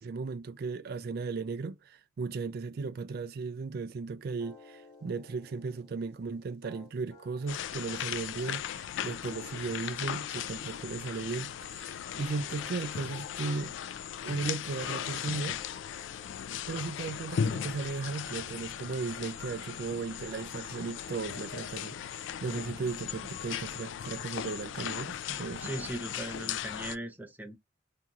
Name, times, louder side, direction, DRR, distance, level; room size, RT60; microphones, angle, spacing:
voice 1, 0.0-13.7 14.2-15.6 16.7-25.7, right 4 dB, 55° right, 0.3 m, -36 dB
sound 1, 4.4-23.3, left 1 dB, 55° left, 1.3 m, -57 dB
sound 2, 7.5-27.0, left 9 dB, 80° left, 0.3 m, -37 dB
voice 2, 25.6-27.6, right 1 dB, 10° right, 0.5 m, -38 dB
2.6 x 2.4 x 2.8 m
head